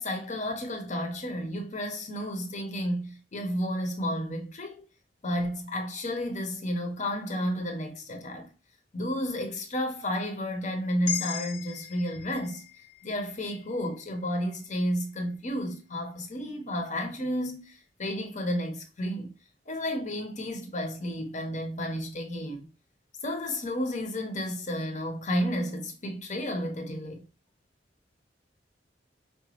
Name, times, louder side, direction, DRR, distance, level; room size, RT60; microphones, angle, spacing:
voice 1, 0.0-4.8 5.2-8.5 8.9-12.6 13.0-19.3 19.7-22.7 23.2-27.2, equal, 40° left, 0.8 m, -32 dB
sound 1, 11.1-15.3, left 9 dB, 90° left, 0.6 m, -39 dB
4.9 x 2.2 x 2.8 m
head